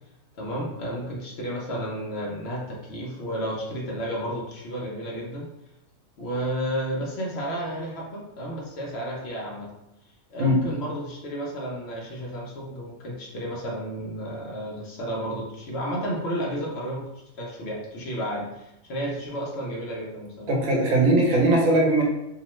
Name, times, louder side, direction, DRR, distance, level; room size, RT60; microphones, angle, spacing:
voice 1, 0.4-5.5 6.2-9.7 10.3-20.5, equal, 60° left, -3 dB, 0.8 m, -32 dB
voice 2, 20.5-22.0, right 1 dB, 80° right, -1 dB, 1.1 m, -20 dB
2.8 x 2.0 x 3.0 m, 0.86 s
omnidirectional pair, 1.4 m